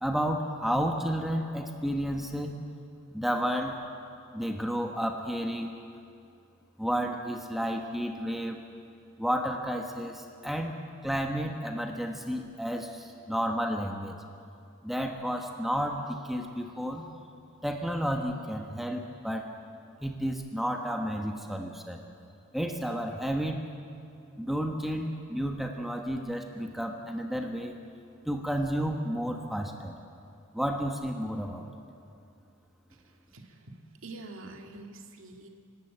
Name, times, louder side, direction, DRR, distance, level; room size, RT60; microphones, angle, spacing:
voice 1, 0.0-2.5 3.1-3.8 4.3-5.7 6.8-8.6 9.2-10.8 11.0-14.2 14.8-17.1 17.6-19.5 20.0-22.0 22.5-23.6 24.4-27.7 28.2-29.9 30.5-31.7, equal, ahead, 3 dB, 1.2 m, -31 dB
voice 2, 33.0-35.5, right 2 dB, 65° right, 3 dB, 2.2 m, -46 dB
26.0 x 12.5 x 8.8 m, 2.5 s
head